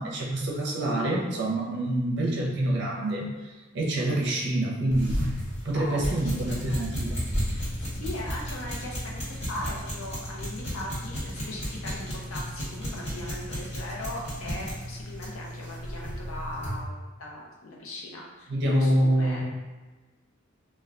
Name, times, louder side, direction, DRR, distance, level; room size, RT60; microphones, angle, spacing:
voice 1, 0.0-5.2 5.6-7.2 18.5-19.4, right 1 dB, 55° right, -2 dB, 0.5 m, -26 dB
sound 1, 4.9-16.8, equal, 30° left, 1.0 m, -33 dB
voice 2, 5.7-6.3 6.6-6.8 7.3-19.4, left 1 dB, 75° left, -2 dB, 0.6 m, -39 dB
2.2 x 2.2 x 3.6 m, 1.2 s
head